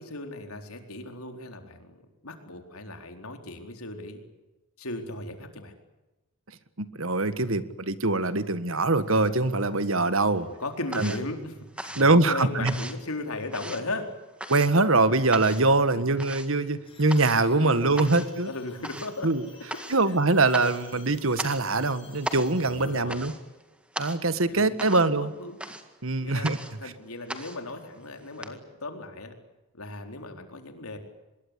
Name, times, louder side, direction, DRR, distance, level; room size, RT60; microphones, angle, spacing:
voice 1, 0.0-4.2 4.8-5.7 10.3-14.1 15.9-16.3 17.6-19.3 19.8-20.0 22.6-23.3 24.5-25.6 26.2-26.5 26.7-29.3 29.7-31.0, left 2 dB, 75° left, 5 dB, 4.2 m, -37 dB
voice 2, 6.8-10.5 11.0-11.1 12.0-12.7 14.5-18.5 19.2-19.5 19.9-23.3 24.0-25.3 26.0-26.6, right 3 dB, 60° right, 13 dB, 1.6 m, -23 dB
sound 1, 9.3-9.9 10.2-28.5, right 1 dB, 5° right, 1.9 m, -39 dB
sound 2, 16.8-23.0, left 4 dB, 25° left, 6.4 m, -53 dB
25.0 x 22.0 x 8.5 m, 1.1 s
head